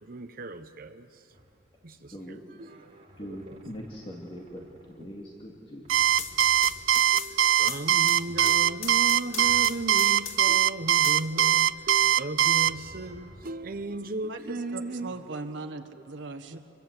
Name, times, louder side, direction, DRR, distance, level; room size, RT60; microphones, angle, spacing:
voice 1, 0.0-1.3 1.8-3.7 7.1-15.1 16.5-16.6, right 2 dB, 45° right, 0.8 m, -36 dB
sound 1, 1.3-1.9 2.6-5.5 5.8-14.0 14.8-15.2, right 1 dB, 30° right, 3.3 m, -54 dB
voice 2, 1.9-2.7 3.2-5.9, equal, 25° left, 2.3 m, -42 dB
sound 2, 5.9-10.6 11.0-12.0, left 7 dB, 85° left, 2.3 m, -39 dB
Alarm, 5.9-12.7, right 10 dB, 85° right, 0.5 m, -21 dB
voice 3, 14.3-16.6, right 3 dB, 65° right, 1.5 m, -39 dB
26.5 x 23.0 x 8.2 m
head